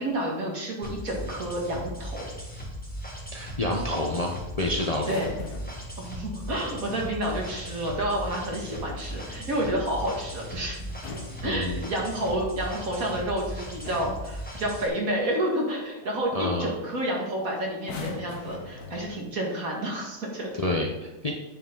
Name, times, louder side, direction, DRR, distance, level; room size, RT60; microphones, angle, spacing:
voice 1, 0.0-2.3 5.1-5.3 6.0-10.8 11.4-20.5, right 1 dB, 55° right, -1 dB, 2.4 m, -30 dB
sound 1, 0.8-14.9, equal, 5° left, 1.5 m, -38 dB
voice 2, 3.3-5.2 11.4-11.9 16.3-16.7 20.5-21.3, left 1 dB, 30° left, 0 dB, 0.8 m, -28 dB
sound 2, 4.9-5.9 8.0-8.6 10.8-12.2 13.2-13.4 13.8-14.3 16.0-16.2 16.5-16.8 17.8-19.4 20.4-20.6, left 4 dB, 70° left, 1.5 m, -42 dB
9.3 x 6.8 x 3.9 m, 0.97 s
omnidirectional pair, 1.7 m